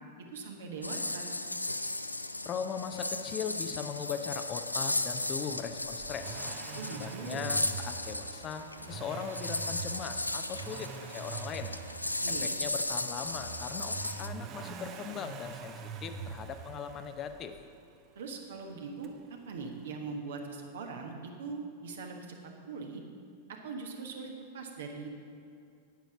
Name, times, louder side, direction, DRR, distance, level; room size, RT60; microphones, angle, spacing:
voice 1, 0.3-1.3 6.7-7.5 12.2-12.5 18.1-22.4 22.7-23.0 23.5-25.1, right 4 dB, 60° right, 2 dB, 1.4 m, -41 dB
sound 1, 0.8-14.3, left 2 dB, 85° left, 0.4 m, -36 dB
voice 2, 2.4-6.4 7.0-11.7 12.3-17.5, left 7 dB, 30° left, 8 dB, 0.6 m, -39 dB
Accelerating revving vroom, 5.8-17.7 19.0-19.1, right 6 dB, 35° right, 0.8 m, -44 dB
9.3 x 9.1 x 5.8 m, 2.5 s
figure-of-eight pair, 90°, 0 cm